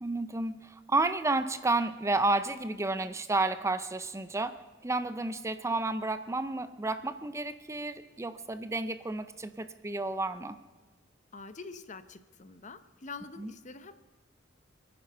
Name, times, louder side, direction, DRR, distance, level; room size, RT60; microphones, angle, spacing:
voice 1, 0.0-10.6 13.4-13.5, right 2 dB, 15° right, 12 dB, 0.5 m, -31 dB
voice 2, 11.3-13.9, left 4 dB, 40° left, 12 dB, 0.9 m, -45 dB
26.0 x 9.7 x 5.6 m, 1.3 s
head